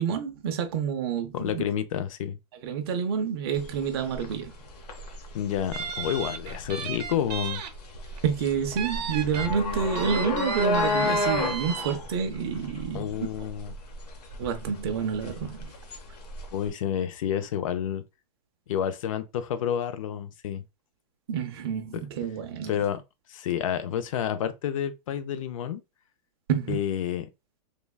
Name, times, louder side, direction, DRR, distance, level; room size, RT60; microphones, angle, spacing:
voice 1, 0.0-1.6 2.6-4.5 8.2-13.3 14.4-15.7 21.3-22.7 26.5-26.8, right 7 dB, 35° right, 0.5 m, -28 dB
voice 2, 1.3-2.4 5.3-7.6 12.9-13.7 16.5-18.0 18.7-20.6 22.7-23.0 23.3-25.8 26.7-27.3, left 9 dB, 50° left, 0.4 m, -29 dB
sound 1, 3.5-16.7, left 2 dB, 70° left, 0.8 m, -33 dB
sound 2, 5.7-7.7 8.1-8.2 8.8-9.5 9.9-11.9, right 7 dB, 80° right, 0.7 m, -34 dB
3.3 x 2.2 x 2.2 m
supercardioid pair, 170°, 21 cm